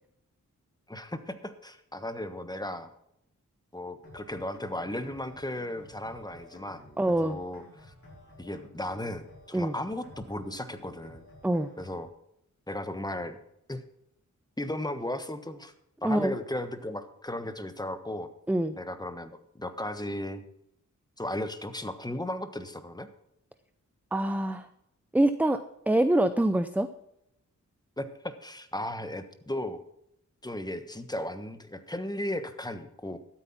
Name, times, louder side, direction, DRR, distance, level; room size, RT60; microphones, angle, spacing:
voice 1, 0.9-2.9 3.7-6.8 7.2-7.9 8.4-11.2 11.8-12.1 12.7-13.4 13.7-13.8 14.6-15.7 16.0-18.3 18.7-20.4 21.2-23.1 28.0-29.8 30.4-33.2, left 1 dB, 10° left, 10 dB, 1.3 m, -35 dB
sound 1, 4.0-12.0, left 1 dB, 45° left, 5.8 m, -52 dB
voice 2, 7.0-7.4 9.5-9.7 11.4-11.7 16.0-16.3 18.5-18.8 24.1-24.7 25.1-26.9, right 1 dB, 5° right, 11 dB, 0.6 m, -25 dB
12.5 x 8.6 x 5.9 m, 0.77 s
cardioid pair, 65°, 32 cm